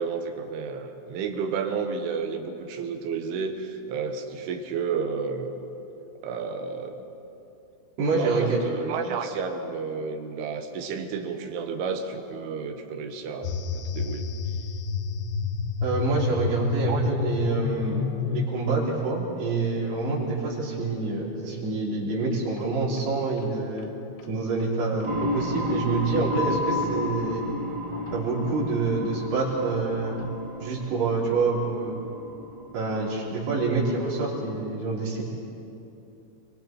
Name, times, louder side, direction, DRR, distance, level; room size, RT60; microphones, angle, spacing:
voice 1, 0.0-5.5 6.2-7.0 8.1-14.3 16.9-17.0, right 5 dB, 75° right, 5 dB, 3.7 m, -31 dB
voice 2, 8.0-8.6 15.8-23.9 24.3-27.5 28.1-30.2 30.6-32.0 32.7-35.3, right 3 dB, 55° right, -5 dB, 5.3 m, -27 dB
sound 1, 13.4-18.5, left 6 dB, 70° left, 2.9 m, -29 dB
sound 2, 22.6-22.7 23.0-23.1 23.4-23.5 23.8-23.9 24.2-24.3 24.6-24.7 25.0-25.1 26.3-26.8 27.9-28.3 28.9-29.0 30.0-30.4, left 5 dB, 90° left, 3.9 m, -33 dB
sound 3, 25.0-34.6, equal, 15° right, 1.1 m, -33 dB
29.5 x 23.5 x 4.4 m, 2.9 s
omnidirectional pair, 5.7 m